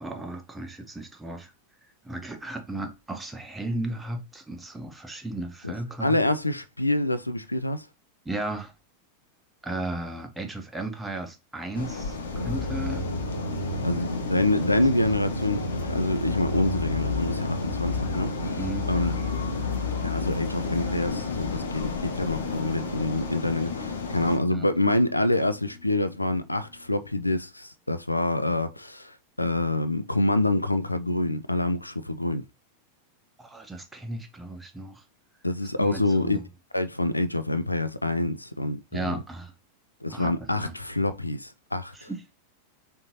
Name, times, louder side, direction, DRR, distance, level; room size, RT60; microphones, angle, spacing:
voice 1, 0.0-1.5 2.0-6.2 8.3-8.7 9.6-13.0 18.6-18.9 24.5-24.7 33.4-35.0 35.8-36.4 38.9-39.5 40.1-40.7 41.9-42.2, right 2 dB, 10° right, 0.7 m, -35 dB
voice 2, 6.0-7.9 13.8-18.6 18.9-19.1 20.0-32.4 35.4-36.4 36.7-39.2 40.0-42.1, left 1 dB, 85° left, 0.3 m, -26 dB
sound 1, 11.7-24.4, left 4 dB, 70° left, 0.7 m, -34 dB
sound 2, 12.3-21.6, left 2 dB, 85° right, 0.4 m, -32 dB
Guitar, 20.8-27.4, left 5 dB, 25° left, 0.9 m, -45 dB
3.6 x 2.7 x 2.9 m
figure-of-eight pair, 90°, 0 cm